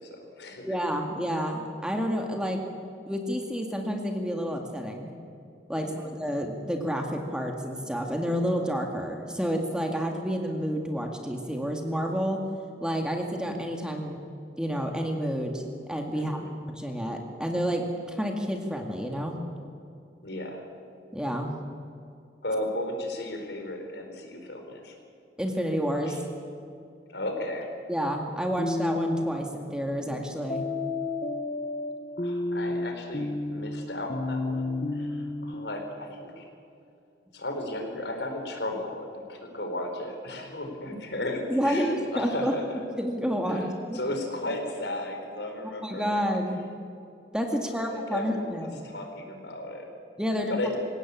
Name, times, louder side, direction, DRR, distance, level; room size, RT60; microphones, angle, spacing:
voice 1, 0.0-0.7 5.7-6.0 16.1-16.5 20.2-20.6 22.4-24.9 26.1-26.2 27.1-27.7 32.2-36.5 37.3-42.8 43.5-46.2 47.7-49.9 50.4-50.8, left 1 dB, 75° left, 4 dB, 4.5 m, -35 dB
voice 2, 0.6-2.6 3.0-5.1 5.7-12.4 12.8-14.3 14.6-16.4 16.8-19.4 21.1-21.6 25.4-26.2 27.9-30.7 41.5-42.5 43.0-44.0 45.8-46.6 47.3-48.8 50.2-50.6, equal, 5° right, 2 dB, 2.0 m, -29 dB
sound 1, 28.6-29.4 30.5-35.5, left 2 dB, 35° left, 1.3 m, -31 dB
26.5 x 17.0 x 8.6 m, 2.5 s
head